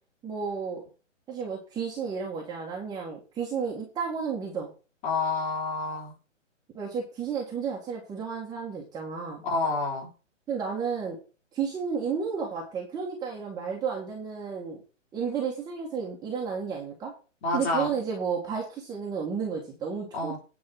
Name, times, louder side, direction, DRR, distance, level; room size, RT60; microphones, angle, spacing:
voice 1, 0.2-0.8 1.3-4.7 6.7-9.4 10.5-11.2 11.5-14.8 15.1-17.1 17.5-20.4, right 6 dB, 10° right, -3 dB, 1.8 m, -32 dB
voice 2, 5.0-6.1 9.4-10.1 17.4-17.9 20.1-20.4, left 3 dB, 25° left, 0 dB, 3.8 m, -28 dB
9.8 x 5.6 x 5.9 m, 0.34 s
hypercardioid pair, 145°, 38 cm